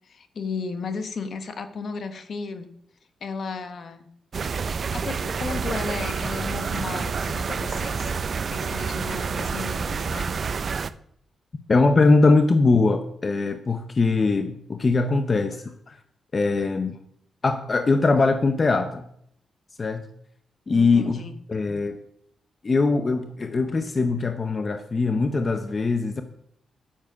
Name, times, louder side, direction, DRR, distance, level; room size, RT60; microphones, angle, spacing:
voice 1, 0.0-2.7 3.2-4.1 4.8-8.2 8.5-10.3 20.7-21.3, left 5 dB, 55° left, 9 dB, 1.0 m, -34 dB
sound 1, 4.3-10.9, right 5 dB, 45° right, 0.5 m, -28 dB
voice 2, 11.7-16.0 16.3-17.0 17.4-19.0 19.8-20.1 20.7-21.2 21.5-22.0 22.6-26.2, left 3 dB, 35° left, 8 dB, 0.7 m, -21 dB
9.2 x 7.5 x 6.0 m, 0.70 s
cardioid pair, 115°, 0 cm